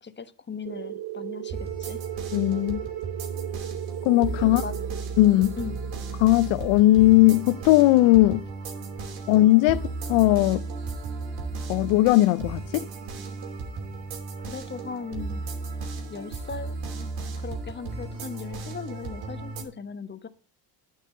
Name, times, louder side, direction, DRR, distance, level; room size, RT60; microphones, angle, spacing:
voice 1, 0.0-2.0 4.4-4.7 5.6-5.8 14.5-15.4 16.1-20.3, left 5 dB, 25° left, 1.1 m, -38 dB
sound 1, 0.7-9.0, right 13 dB, 50° right, 1.4 m, -38 dB
sound 2, 1.5-19.6, right 4 dB, 75° right, 2.9 m, -35 dB
voice 2, 2.3-2.8 4.0-4.6 5.2-5.6 6.2-8.5 9.3-10.7 11.7-12.8, left 17 dB, 70° left, 0.6 m, -19 dB
9.4 x 5.7 x 7.4 m
supercardioid pair, 85°, 46 cm